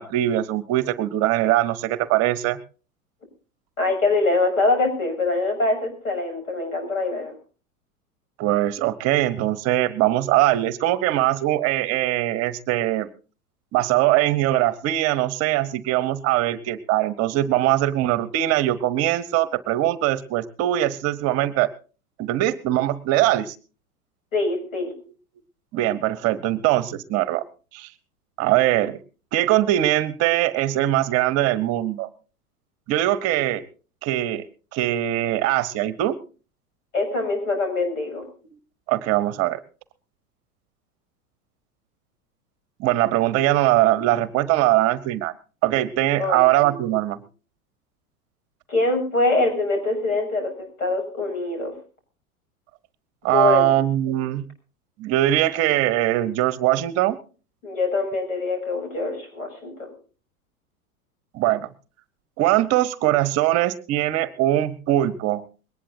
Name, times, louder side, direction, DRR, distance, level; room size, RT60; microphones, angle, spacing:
voice 1, 0.0-2.6 8.4-13.1 13.7-21.7 22.2-23.5 25.7-27.4 27.7-27.9 28.4-29.0 29.3-32.1 32.9-33.6 34.0-34.4 34.7-36.2 38.9-39.6 42.8-45.3 45.6-47.3 53.2-54.4 55.0-57.2 61.3-61.7 62.4-65.4, right 14 dB, 35° right, 17 dB, 0.9 m, -21 dB
voice 2, 3.8-7.4 24.3-24.9 36.9-38.2 46.2-46.8 48.7-50.5 50.8-51.7 53.3-53.7 57.6-59.9, left 2 dB, 70° left, 4 dB, 7.0 m, -24 dB
21.0 x 19.0 x 2.7 m, 0.37 s
figure-of-eight pair, 85°, 43 cm